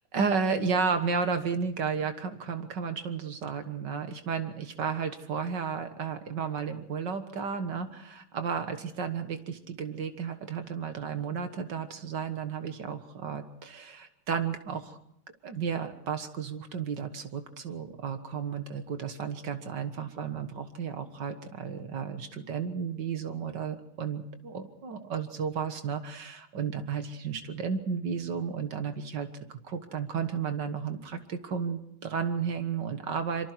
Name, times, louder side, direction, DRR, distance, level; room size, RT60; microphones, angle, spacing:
voice 1, 0.1-15.0 15.4-29.3 29.6-33.5, right 6 dB, 55° right, 8 dB, 2.0 m, -33 dB
26.0 x 24.5 x 4.6 m, 0.76 s
omnidirectional pair, 2.4 m